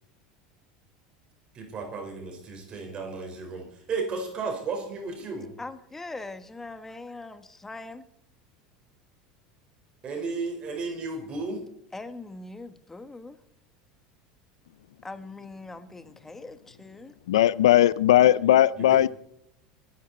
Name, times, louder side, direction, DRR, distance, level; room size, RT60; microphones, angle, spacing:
voice 1, 1.5-5.5 10.0-11.6 18.8-19.1, right 4 dB, 40° right, 3 dB, 4.6 m, -34 dB
voice 2, 5.6-8.0 11.9-13.4 15.0-17.1, left 2 dB, 10° left, 10 dB, 1.4 m, -41 dB
voice 3, 17.3-19.1, left 12 dB, 90° left, 20 dB, 0.5 m, -18 dB
21.0 x 11.0 x 4.2 m, 0.73 s
supercardioid pair, 100°, 3 cm